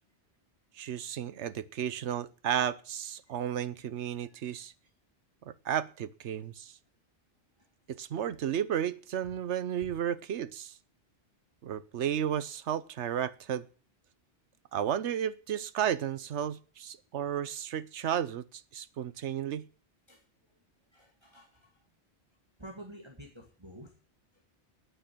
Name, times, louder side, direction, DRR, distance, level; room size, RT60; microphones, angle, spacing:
voice 1, 0.7-4.7 5.4-6.7 7.9-10.7 11.6-13.6 14.7-19.6, right 9 dB, 85° right, 16 dB, 1.1 m, -33 dB
voice 2, 3.2-3.7 4.1-4.5 7.6-7.7 9.2-9.3 9.8-9.9 19.2-19.3 20.1-20.6 20.9-21.9 22.6-23.9 24.3-24.4, right 1 dB, 25° right, 0 dB, 2.0 m, -51 dB
9.3 x 9.0 x 8.5 m, 0.38 s
omnidirectional pair, 1.1 m